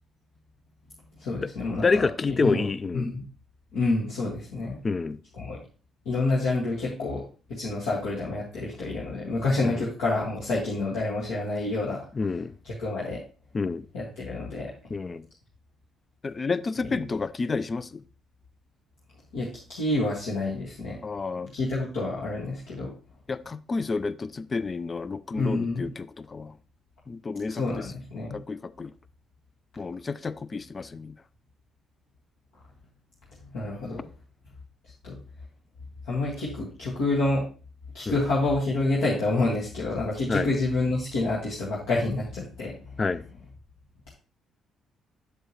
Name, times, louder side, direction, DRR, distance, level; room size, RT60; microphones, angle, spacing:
voice 1, 1.2-2.7 2.9-3.2 3.7-4.8 5.4-5.6 6.0-7.2 7.5-12.0 12.6-13.2 13.9-14.7 16.9-17.0 19.3-21.0 21.4-22.9 25.3-25.9 27.5-28.4 33.5-34.1 35.0-35.1 36.0-37.4 37.9-42.7, left 2 dB, 70° left, 1.7 m, -28 dB
voice 2, 1.8-3.1 4.8-5.2 9.6-9.9 12.2-12.5 13.5-13.9 14.9-15.3 16.2-18.0 21.0-21.5 23.3-26.5 27.1-27.9 28.3-28.9 29.8-31.1 38.1-38.2 40.3-40.5 43.0-43.2, left 4 dB, 35° left, 0.4 m, -29 dB
7.9 x 7.0 x 2.9 m
figure-of-eight pair, 45°, 0 cm